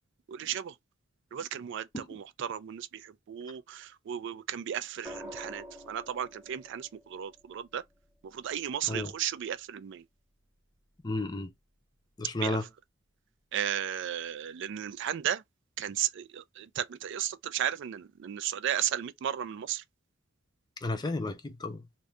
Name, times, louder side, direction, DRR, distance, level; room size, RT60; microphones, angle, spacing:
voice 1, 0.3-0.7 1.3-7.8 8.3-10.0 12.4-12.6 13.5-15.4 15.8-19.8, right 10 dB, 65° right, 0.3 m, -34 dB
sound 1, 5.0-9.2 10.9-11.3, equal, 5° right, 1.0 m, -48 dB
voice 2, 11.0-11.5 12.2-12.7 20.8-21.8, left 2 dB, 20° left, 0.5 m, -33 dB
2.6 x 2.4 x 3.2 m
head